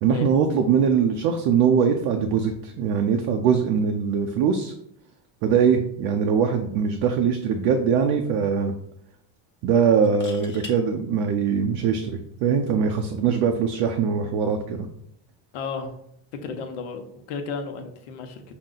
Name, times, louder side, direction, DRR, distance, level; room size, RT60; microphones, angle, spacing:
voice 1, 0.0-4.7 5.4-8.7 9.6-14.9, right 6 dB, 85° right, 4 dB, 0.7 m, -22 dB
sound 1, 9.9-10.8 12.6-12.8, left 2 dB, 25° left, 0.8 m, -42 dB
voice 2, 15.5-16.0 16.4-18.4, left 5 dB, 85° left, 5 dB, 0.9 m, -33 dB
5.8 x 2.2 x 3.8 m, 0.72 s
cardioid pair, 120°, 49 cm